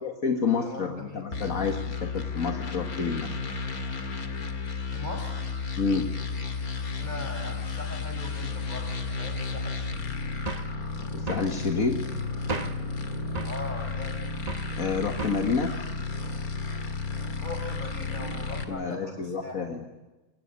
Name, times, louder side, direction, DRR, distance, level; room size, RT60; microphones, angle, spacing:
voice 1, 0.0-3.4 5.8-6.1 11.1-12.0 14.8-15.8 18.5-19.8, left 5 dB, 70° left, 4 dB, 2.2 m, -29 dB
voice 2, 0.6-1.3 4.9-5.3 7.0-10.2 13.4-14.2 17.4-19.8, left 2 dB, 30° left, 4 dB, 6.2 m, -40 dB
sound 1, 1.3-18.6, left 4 dB, 85° left, 2.6 m, -33 dB
sound 2, 10.5-10.8 11.3-11.5 12.5-12.9 13.4-13.6 14.5-14.7 15.2-15.5, right 3 dB, 30° right, 1.2 m, -34 dB
24.0 x 19.0 x 9.9 m, 1.1 s
omnidirectional pair, 1.5 m